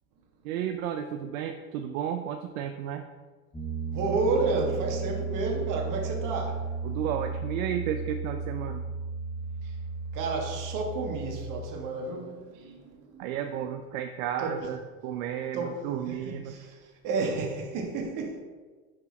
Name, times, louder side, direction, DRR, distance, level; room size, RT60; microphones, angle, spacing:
voice 1, 0.4-3.0 6.8-8.8 12.5-12.7 13.2-16.5, right 9 dB, 70° right, 6 dB, 0.6 m, -33 dB
Piano, 3.5-11.6, right 4 dB, 10° left, 0.8 m, -34 dB
voice 2, 3.9-6.6 9.6-9.8 10.1-13.2 14.4-14.7 15.5-15.7 16.1-18.4, right 3 dB, 45° right, 1 dB, 1.6 m, -31 dB
5.9 x 4.4 x 4.2 m, 1.4 s
hypercardioid pair, 100°, 43 cm